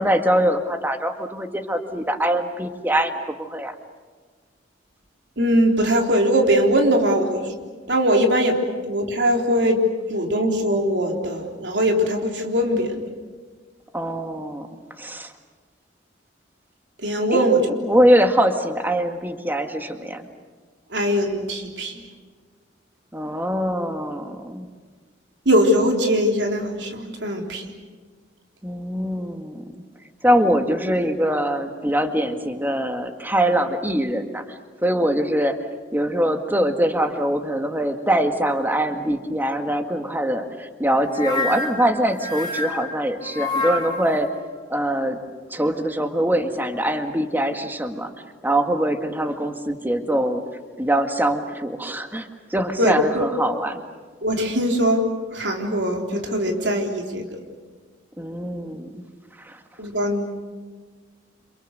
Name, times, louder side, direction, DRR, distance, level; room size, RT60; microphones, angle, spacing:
voice 1, 0.0-3.8 13.9-14.7 15.0-15.3 17.3-17.6 17.8-20.3 23.1-24.7 28.6-29.6 30.2-35.6 35.9-44.3 44.7-45.2 45.5-48.1 48.4-50.4 50.8-53.8 58.2-59.1 59.4-59.6, right 1 dB, 10° right, 6 dB, 1.9 m, -23 dB
voice 2, 5.4-7.5 7.9-9.8 10.1-13.0 17.0-17.6 20.9-22.0 25.5-27.7 52.8-53.2 54.2-57.3 59.8-60.4, equal, 75° right, 2 dB, 3.7 m, -21 dB
sound 1, 41.1-44.2, left 2 dB, 25° left, 4.5 m, -28 dB
30.0 x 27.0 x 6.8 m, 1.5 s
head